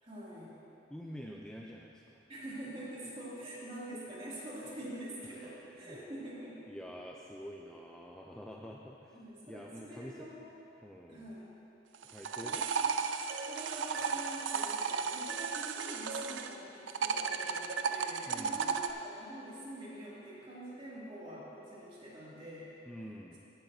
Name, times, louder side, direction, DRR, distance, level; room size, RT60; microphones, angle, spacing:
voice 1, 0.0-0.5 2.3-6.6 9.1-10.4 11.1-11.5 12.4-13.0 13.5-22.7, right 1 dB, 30° right, -8 dB, 2.4 m, -46 dB
voice 2, 0.9-2.2 5.2-6.0 6.7-9.2 9.4-10.3 10.8-11.4 12.0-12.7 18.3-18.8 22.9-23.4, equal, 5° left, -2 dB, 0.4 m, -47 dB
sound 1, 11.9-16.5 16.9-18.9, right 6 dB, 85° right, 0.4 m, -34 dB
15.0 x 9.0 x 2.7 m, 2.9 s
head